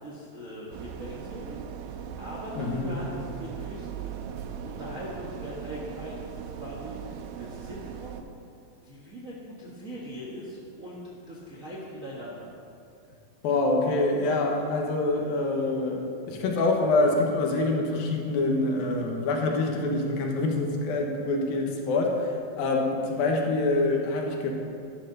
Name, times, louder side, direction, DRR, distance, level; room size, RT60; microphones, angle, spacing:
voice 1, 0.0-1.6 2.2-4.2 4.6-8.3 8.8-11.0 11.3-12.5, equal, 65° right, -5 dB, 0.8 m, -40 dB
sound 1, 0.7-8.2, right 8 dB, 85° right, 2.5 m, -39 dB
voice 2, 2.6-2.9 13.4-24.5, left 2 dB, 80° left, 1 dB, 3.0 m, -26 dB
12.0 x 12.0 x 4.0 m, 2.5 s
omnidirectional pair, 4.2 m